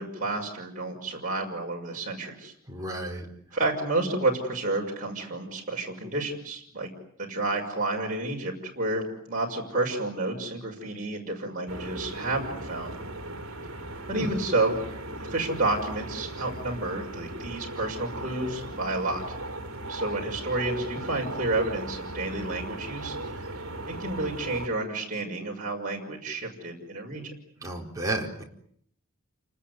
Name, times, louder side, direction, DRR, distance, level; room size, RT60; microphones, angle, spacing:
voice 1, 0.0-2.5 3.5-6.9 7.2-12.9 14.1-15.0 15.3-19.4 19.9-23.4 23.9-27.3, right 2 dB, 35° right, -1 dB, 6.0 m, -30 dB
voice 2, 2.7-3.3 14.1-14.3 27.6-28.4, right 1 dB, 15° right, 0 dB, 4.6 m, -32 dB
sound 1, 11.7-24.7, right 1 dB, 70° right, 2.9 m, -38 dB
29.5 x 20.0 x 9.7 m, 0.68 s
head